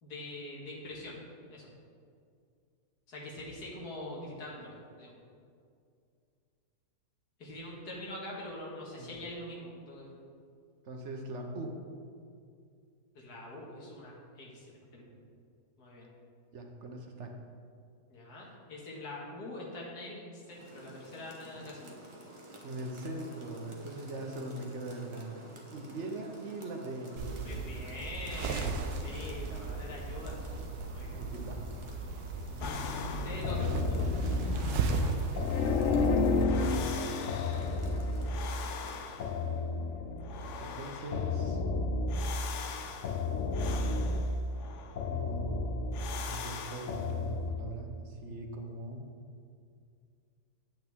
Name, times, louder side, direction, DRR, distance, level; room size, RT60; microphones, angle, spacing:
voice 1, 0.0-1.2 1.5-1.7 3.1-5.2 7.4-10.1 13.1-15.1 15.8-16.1 18.1-22.0 27.4-30.4 30.9-31.2 32.6-32.8 33.2-34.2, left 1 dB, 85° left, -4 dB, 2.3 m, -44 dB
voice 2, 10.8-11.8 16.5-17.4 22.6-27.7 31.1-31.7 33.5-33.8 35.6-37.0 40.6-41.6 45.1-49.1, right 2 dB, 55° right, 3 dB, 1.1 m, -41 dB
Rain, 20.4-39.1, right 1 dB, 25° right, 0.8 m, -51 dB
sound 1, 27.2-36.4, right 3 dB, 75° right, 1.2 m, -36 dB
sound 2, 32.6-47.5, left 3 dB, 65° left, 0.8 m, -32 dB
9.0 x 8.5 x 3.6 m, 2.3 s
omnidirectional pair, 1.7 m